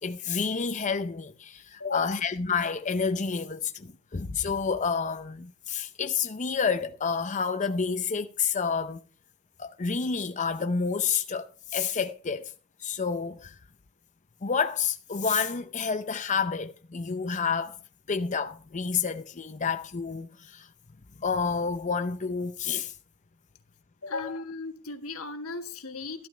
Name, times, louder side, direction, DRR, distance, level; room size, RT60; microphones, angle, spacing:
voice 1, 0.0-9.0 9.6-12.5 12.8-13.5 14.4-17.8 18.1-20.7 21.2-22.9, left 5 dB, 35° left, 0.6 m, -29 dB
voice 2, 1.8-2.1 24.0-26.3, left 3 dB, 85° left, 1.6 m, -36 dB
13.5 x 12.0 x 3.3 m
head